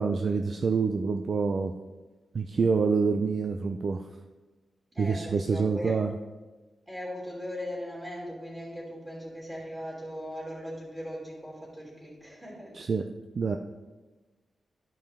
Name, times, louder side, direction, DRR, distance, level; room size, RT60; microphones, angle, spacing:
voice 1, 0.0-1.7 2.3-4.1 5.0-6.1 12.7-13.1 13.4-13.6, right 5 dB, 50° right, 5 dB, 0.4 m, -26 dB
voice 2, 4.9-6.0 6.9-12.8, equal, 10° right, -5 dB, 3.0 m, -39 dB
12.0 x 5.4 x 3.6 m, 1.2 s
wide cardioid pair, 105°, 0 cm